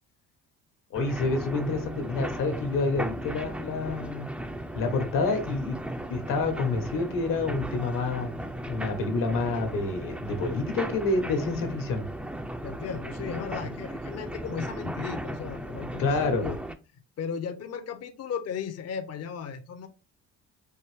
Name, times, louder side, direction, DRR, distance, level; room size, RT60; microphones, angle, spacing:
voice 1, 0.9-4.3 4.7-5.8 6.1-8.3 8.7-12.1 16.0-16.4, left 3 dB, 80° left, 5 dB, 1.3 m, -28 dB
sound 1, 0.9-16.7, right 1 dB, 5° right, 0.4 m, -36 dB
voice 2, 12.6-16.6 17.2-19.9, left 7 dB, 50° left, 7 dB, 0.6 m, -35 dB
4.6 x 2.6 x 3.3 m, 0.31 s
cardioid pair, 90°, 32 cm